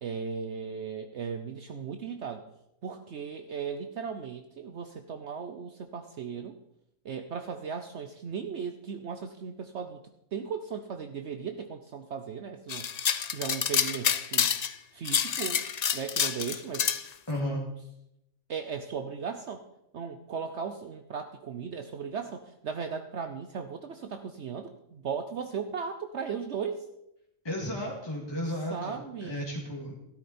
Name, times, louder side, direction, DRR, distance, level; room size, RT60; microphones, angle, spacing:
voice 1, 0.0-2.4 2.8-6.6 7.0-10.0 10.3-12.9 13.3-14.5 14.9-15.6 15.9-16.9 18.5-19.6 19.9-26.8 28.7-29.5, right 6 dB, 60° right, 7 dB, 1.0 m, -37 dB
sound 1, 12.7-14.7 15.0-17.0, left 8 dB, 60° left, 0.4 m, -28 dB
voice 2, 17.3-17.6 27.4-30.0, equal, 20° left, -3 dB, 2.2 m, -34 dB
13.0 x 12.5 x 4.3 m, 0.81 s
omnidirectional pair, 1.4 m